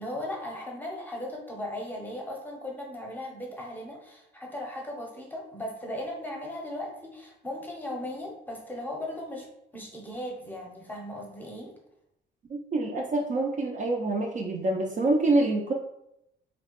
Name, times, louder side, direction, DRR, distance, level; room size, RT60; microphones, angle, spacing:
voice 1, 0.0-9.5 9.7-11.7, left 1 dB, 10° left, -1 dB, 0.7 m, -37 dB
voice 2, 12.5-15.7, right 2 dB, 40° right, 0 dB, 0.4 m, -26 dB
2.8 x 2.0 x 2.9 m, 0.79 s
cardioid pair, 90°, 20 cm